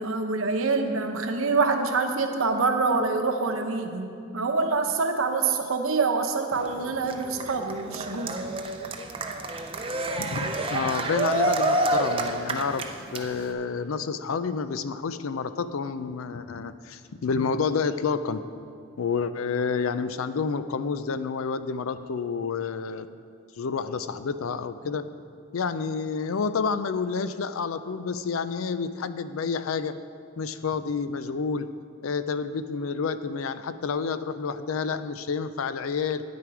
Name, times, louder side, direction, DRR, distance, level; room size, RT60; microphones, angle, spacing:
voice 1, 0.0-8.4, right 4 dB, 85° right, 6 dB, 0.9 m, -26 dB
Cheering, 6.5-13.5, right 2 dB, 25° right, 0.6 m, -28 dB
voice 2, 10.2-18.4 19.0-23.1 23.6-25.1 25.5-30.0 30.4-31.7 32.0-36.2, left 5 dB, 85° left, 12 dB, 0.5 m, -29 dB
9.6 x 9.5 x 4.7 m, 2.3 s
head